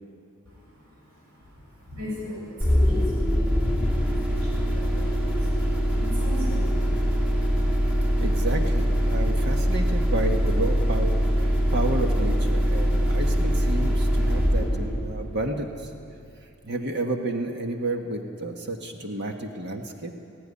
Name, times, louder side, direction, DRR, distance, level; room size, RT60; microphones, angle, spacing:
voice 1, 0.5-7.7, equal, 85° right, -6 dB, 7.0 m, -40 dB
sound 1, 2.6-16.1, equal, 5° right, 2.3 m, -23 dB
voice 2, 8.2-15.9 16.6-20.1, right 2 dB, 50° right, 3 dB, 1.5 m, -31 dB
17.0 x 16.5 x 9.8 m, 2.4 s
head